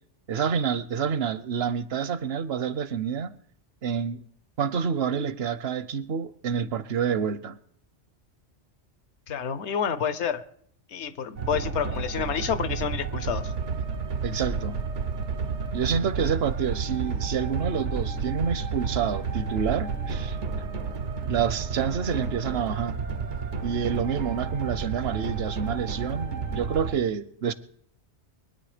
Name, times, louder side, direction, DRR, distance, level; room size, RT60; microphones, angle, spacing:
voice 1, 0.3-3.4 3.8-4.3 4.6-7.6 14.2-14.8 15.7-20.4 21.2-23.0 23.6-27.5, right 7 dB, 65° right, 0.9 m, -28 dB
voice 2, 9.3-10.4 10.9-13.5, left 7 dB, 75° left, 1.1 m, -29 dB
sound 1, 11.4-26.9, right 5 dB, 85° right, 1.3 m, -31 dB
23.0 x 9.5 x 5.0 m
omnidirectional pair, 1.2 m